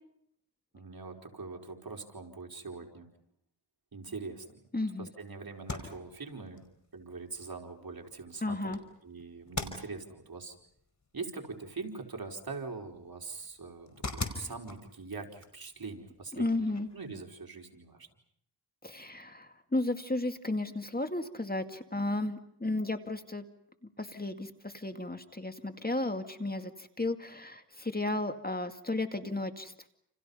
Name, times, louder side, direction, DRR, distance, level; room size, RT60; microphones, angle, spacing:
voice 1, 0.7-3.1 3.9-4.6 5.0-6.7 6.9-10.5 11.1-18.1, right 4 dB, 60° right, 2 dB, 4.7 m, -43 dB
voice 2, 4.7-5.1 8.4-8.8 16.4-16.9 18.8-23.5 24.0-29.9, left 2 dB, 20° left, 7 dB, 2.2 m, -34 dB
sound 1, 5.5-17.2, left 3 dB, 45° left, 5.1 m, -45 dB
29.5 x 29.0 x 5.6 m, 0.71 s
wide cardioid pair, 65°, 40 cm